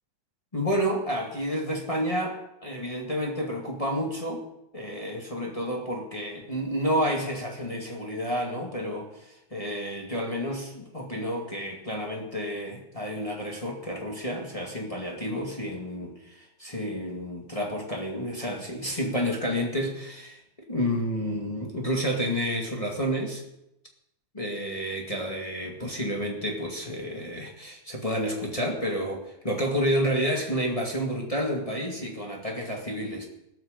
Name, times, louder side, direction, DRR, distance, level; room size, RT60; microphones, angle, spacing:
voice 1, 0.5-2.4 2.6-4.4 4.7-23.4 24.3-33.2, equal, 15° left, -1 dB, 1.3 m, -30 dB
16.5 x 14.0 x 5.2 m, 0.86 s
omnidirectional pair, 4.2 m